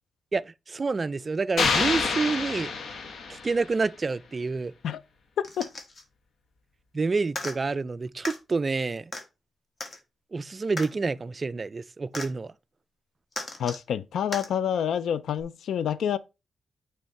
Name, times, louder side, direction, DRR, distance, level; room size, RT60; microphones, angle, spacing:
voice 1, 0.3-2.7 3.3-4.7 6.9-9.1 10.3-12.5, right 4 dB, 30° right, 0.3 m, -28 dB
sound 1, 1.6-3.7, left 5 dB, 65° left, 1.1 m, -27 dB
voice 2, 5.4-5.7 13.6-16.2, left 9 dB, 90° left, 0.4 m, -28 dB
sound 2, 5.4-6.0 7.3-7.5 8.2-8.4 9.1-9.2 9.8-10.0 10.8-10.9 12.1-12.3 13.3-13.8 14.3-14.5 15.4-15.5, left 2 dB, 35° left, 1.6 m, -36 dB
8.9 x 3.3 x 4.1 m
wide cardioid pair, 140°, 0 cm